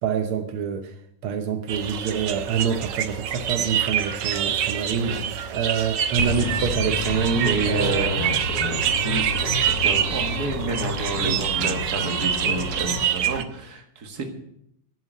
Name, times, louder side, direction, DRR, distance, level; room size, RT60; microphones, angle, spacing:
voice 1, 0.0-1.0 1.2-5.2 5.5-8.1 11.2-11.4, right 7 dB, 80° right, 6 dB, 1.7 m, -26 dB
sound 1, 1.7-13.4, right 9 dB, 65° right, 1.4 m, -26 dB
sound 2, 6.2-13.0, left 5 dB, 80° left, 1.9 m, -31 dB
voice 2, 7.4-14.2, right 3 dB, 45° right, 4 dB, 2.2 m, -30 dB
10.5 x 7.9 x 9.2 m, 0.75 s
omnidirectional pair, 2.3 m